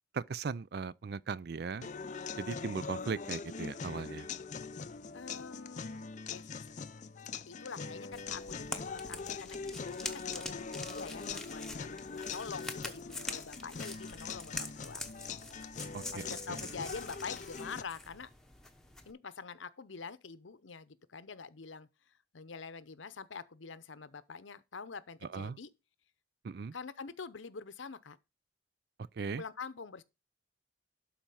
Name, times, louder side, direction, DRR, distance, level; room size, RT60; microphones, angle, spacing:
voice 1, 0.1-1.9 2.4-4.3 15.9-16.6 25.2-25.6 26.4-26.7 29.1-29.4, right 5 dB, 55° right, 0.4 m, -38 dB
sound 1, 1.8-17.8, left 5 dB, 40° left, 0.5 m, -42 dB
voice 2, 5.1-6.0 6.3-6.7 7.0-15.3 16.1-18.3 19.1-21.9 22.3-25.7 26.7-28.2 29.4-30.0, left 5 dB, 85° left, 0.8 m, -46 dB
sound 2, 8.1-19.1, left 2 dB, 5° left, 1.0 m, -45 dB
12.0 x 4.4 x 5.5 m
head